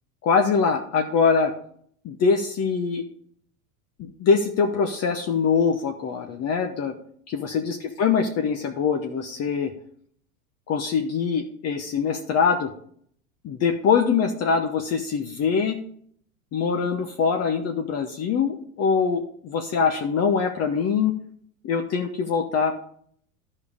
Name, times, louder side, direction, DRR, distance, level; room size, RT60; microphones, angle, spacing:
voice 1, 0.2-1.5 2.0-3.0 4.0-6.9 7.3-9.7 10.7-12.7 13.4-15.8 16.5-21.1 21.6-23.0, left 5 dB, 35° left, 5 dB, 1.0 m, -23 dB
11.5 x 5.5 x 4.9 m, 0.62 s
hypercardioid pair, 100°, 44 cm